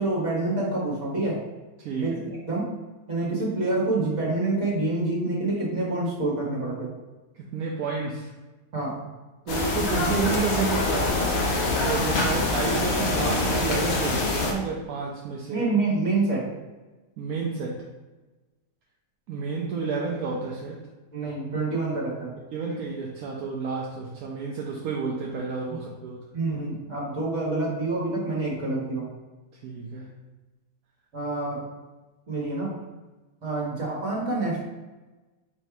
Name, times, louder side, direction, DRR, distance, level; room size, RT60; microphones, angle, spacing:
voice 1, 0.0-1.4 2.0-2.2 2.5-2.7 3.1-6.9 8.7-9.0 15.5-16.6 21.1-22.3 26.3-29.1 31.1-31.7 32.3-32.7 33.4-34.6, right 2 dB, 55° right, -5 dB, 1.8 m, -27 dB
voice 2, 1.8-2.2 7.3-8.3 9.5-11.3 11.8-15.7 17.2-17.8 19.3-20.8 22.5-26.3 29.6-30.1, right 4 dB, 75° right, -2 dB, 1.1 m, -30 dB
sound 1, 9.5-14.5, left 2 dB, 55° left, 0.9 m, -25 dB
4.1 x 2.7 x 4.6 m, 1.2 s
omnidirectional pair, 1.6 m